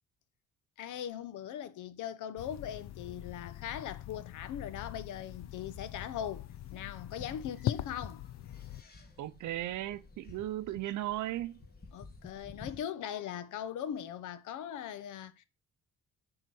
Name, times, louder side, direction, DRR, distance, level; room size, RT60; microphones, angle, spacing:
voice 1, 0.8-8.2 11.9-15.4, left 9 dB, 80° left, 0.8 m, -40 dB
sound 1, 2.4-8.8, left 13 dB, 65° left, 0.5 m, -42 dB
sound 2, 4.8-12.8, left 4 dB, 30° left, 1.7 m, -53 dB
voice 2, 9.2-11.6, right 14 dB, 75° right, 0.6 m, -36 dB
6.8 x 3.9 x 6.1 m
cardioid pair, 90°, 30 cm